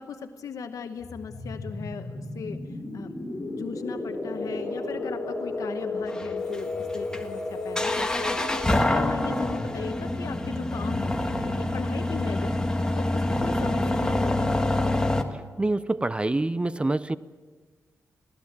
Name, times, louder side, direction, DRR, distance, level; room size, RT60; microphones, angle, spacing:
voice 1, 0.0-3.2 3.5-14.7, left 6 dB, 85° left, 7 dB, 1.1 m, -38 dB
sound 1, 1.0-11.5, left 2 dB, 35° left, 7.2 m, -34 dB
sound 2, 6.1-15.2, left 1 dB, 15° left, 1.6 m, -26 dB
voice 2, 15.6-17.2, right 2 dB, 20° right, 16 dB, 0.5 m, -26 dB
22.0 x 17.5 x 7.4 m, 1.5 s
wide cardioid pair, 105°, 6 cm